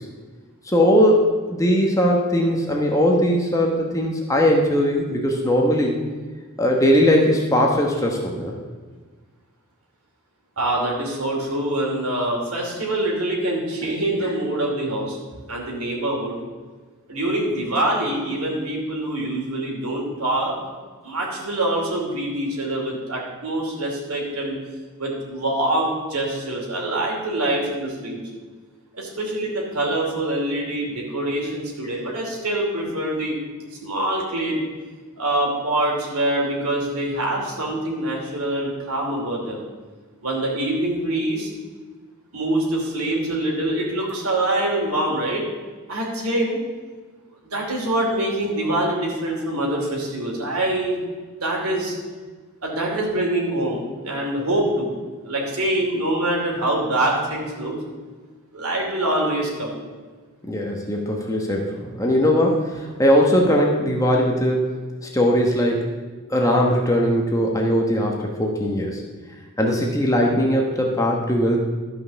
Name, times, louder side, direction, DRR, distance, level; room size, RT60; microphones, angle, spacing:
voice 1, 0.7-6.0 6.6-8.5 13.8-13.9 60.5-64.8 65.0-65.9 66.3-69.0 69.6-71.6, equal, 15° left, 0 dB, 1.1 m, -20 dB
voice 2, 10.6-15.2 15.5-16.4 17.1-20.6 21.0-24.6 25.0-28.2 29.0-33.4 33.8-34.6 35.2-39.6 40.2-41.5 42.3-45.4 45.9-46.6 47.4-51.0 51.4-51.9 52.6-54.9 55.2-57.7 58.5-59.7, right 1 dB, 90° right, -1 dB, 2.7 m, -24 dB
12.5 x 5.5 x 6.9 m, 1.4 s
head